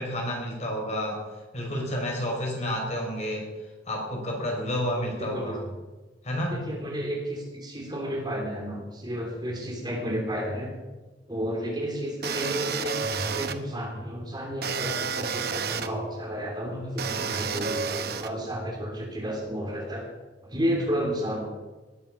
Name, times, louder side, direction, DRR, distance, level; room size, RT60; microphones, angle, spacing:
voice 1, 0.0-3.5 3.8-5.6 6.2-6.6, equal, 40° left, 0 dB, 4.9 m, -30 dB
voice 2, 5.1-5.7 6.5-10.8 11.3-20.1 20.4-21.5, equal, 25° right, 0 dB, 3.3 m, -32 dB
sound 1, 12.2-13.5 14.6-15.9 17.0-18.3, right 6 dB, 55° right, 1.0 m, -30 dB
19.0 x 9.2 x 6.3 m, 1.2 s
head